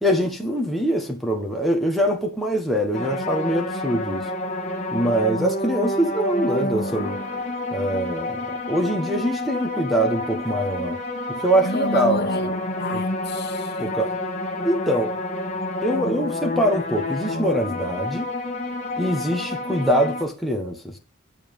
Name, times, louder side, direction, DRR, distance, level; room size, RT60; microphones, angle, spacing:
voice 1, 0.0-4.3 4.9-7.2 7.7-11.0 11.4-12.5 12.9-13.0 13.8-14.1 14.6-15.2 15.8-18.3 19.0-21.0, equal, ahead, 1.4 m, -23 dB
sound 1, 2.9-20.2, left 1 dB, 30° left, 1.8 m, -29 dB
voice 2, 11.6-13.7, left 1 dB, 50° left, 1.3 m, -28 dB
7.6 x 7.1 x 5.4 m
head